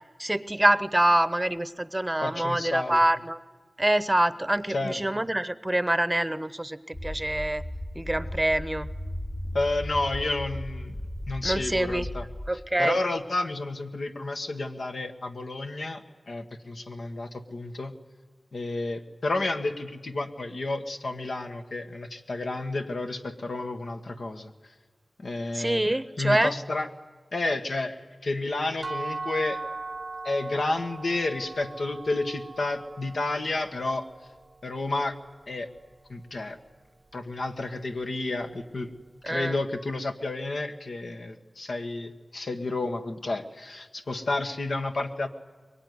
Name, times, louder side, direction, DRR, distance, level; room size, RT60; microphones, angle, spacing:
voice 1, 0.2-3.4 3.8-7.6 7.9-8.9 11.4-12.1 12.5-13.0 25.5-26.5 39.2-39.6, right 1 dB, 15° right, 14 dB, 0.8 m, -25 dB
voice 2, 2.2-3.0 4.7-5.2 9.5-10.9 11.3-12.2 12.8-17.9 18.5-24.5 25.2-25.9 26.2-26.9 27.3-29.6 30.2-34.0 34.6-35.1 35.5-35.7 36.1-36.6 37.1-38.9 39.2-45.3, left 2 dB, 80° left, 5 dB, 1.6 m, -31 dB
sound 1, 6.9-12.5, left 1 dB, 60° left, 3.1 m, -36 dB
sound 2, 28.8-34.6, right 3 dB, 55° right, 0.7 m, -39 dB
23.5 x 22.5 x 9.6 m, 1.4 s
wide cardioid pair, 70°, 0 cm